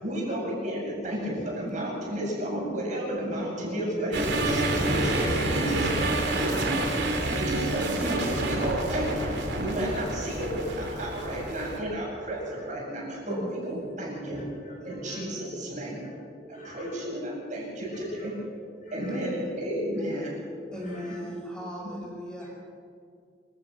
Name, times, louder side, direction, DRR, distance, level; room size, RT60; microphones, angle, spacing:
voice 1, 0.0-6.7 7.3-9.3 9.6-14.4 14.8-16.0 16.5-18.4 18.9-20.3 21.1-21.2, right 1 dB, 45° right, -3 dB, 7.8 m, -32 dB
voice 2, 1.2-1.6 3.9-4.4 6.2-7.8 8.3-8.5 9.9-10.1 10.6-10.7 11.1-11.2 11.5-11.6 12.2-12.3 12.6-12.8 14.3-17.3 17.9-18.5 18.8-19.4 19.9-20.0 20.4-21.2, equal, 45° left, -2 dB, 6.7 m, -49 dB
sound 1, 4.1-11.8, right 1 dB, 70° right, 3.4 m, -28 dB
voice 3, 20.7-22.5, equal, 5° left, -3 dB, 6.6 m, -37 dB
27.0 x 17.0 x 6.4 m, 2.2 s
head